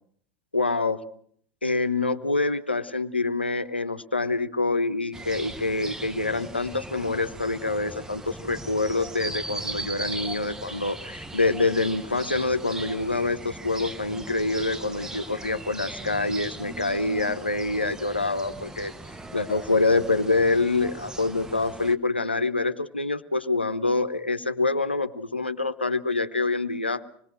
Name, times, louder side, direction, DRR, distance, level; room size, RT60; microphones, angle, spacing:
voice 1, 0.5-1.0 1.6-18.9 19.3-27.0, left 3 dB, 85° left, 11 dB, 0.9 m, -26 dB
sound 1, 5.1-22.0, right 2 dB, 10° right, 1.1 m, -39 dB
26.0 x 20.5 x 6.4 m, 0.62 s
figure-of-eight pair, 75°, 6 cm